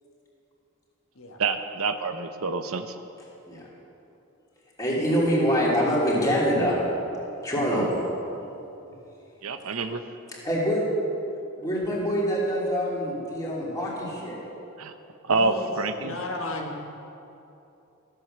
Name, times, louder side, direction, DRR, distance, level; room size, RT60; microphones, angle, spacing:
voice 1, 1.4-3.0 9.4-10.0 14.8-14.9 15.3-16.2, right 3 dB, 75° right, 8 dB, 0.7 m, -27 dB
voice 2, 4.8-6.7 7.4-7.8 8.3-8.4 10.4-10.8 11.6-14.4, equal, 15° left, -6 dB, 3.2 m, -25 dB
voice 3, 15.3-15.7 16.0-16.9, left 2 dB, 70° left, 1 dB, 1.5 m, -34 dB
14.5 x 8.3 x 6.8 m, 2.8 s
head